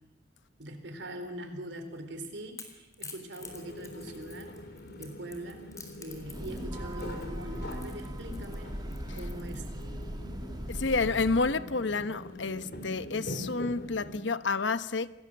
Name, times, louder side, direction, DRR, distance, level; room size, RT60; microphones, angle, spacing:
voice 1, 0.6-4.6 5.0-5.7 6.0-8.8 9.1-9.7 12.0-12.1, right 1 dB, 65° right, 4.0 m, -42 dB
Crackle / Crack, 1.9-10.0, left 4 dB, 15° left, 3.8 m, -49 dB
sound 1, 3.4-14.2, left 1 dB, 55° left, 3.0 m, -44 dB
Breathing / Train, 6.1-11.6, equal, 20° right, 1.6 m, -39 dB
voice 2, 10.7-15.1, left 4 dB, 75° left, 1.0 m, -29 dB
27.5 x 18.5 x 7.9 m
head